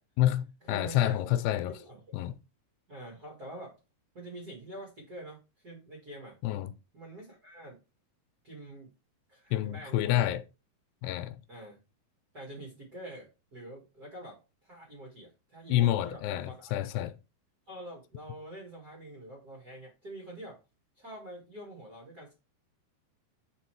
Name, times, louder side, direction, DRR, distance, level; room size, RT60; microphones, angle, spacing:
voice 1, 0.2-1.8 2.1-2.4 6.4-6.7 9.5-10.4 11.0-11.4 15.7-17.2, left 13 dB, 85° left, 2.6 m, -28 dB
voice 2, 0.7-1.2 1.7-2.2 2.9-3.8 4.1-6.4 6.9-7.8 8.4-8.9 9.3-10.4 11.5-11.8 12.3-16.7 17.7-20.6 20.9-22.3, right 1 dB, 40° right, 1.5 m, -46 dB
5.6 x 4.4 x 4.6 m
omnidirectional pair, 4.6 m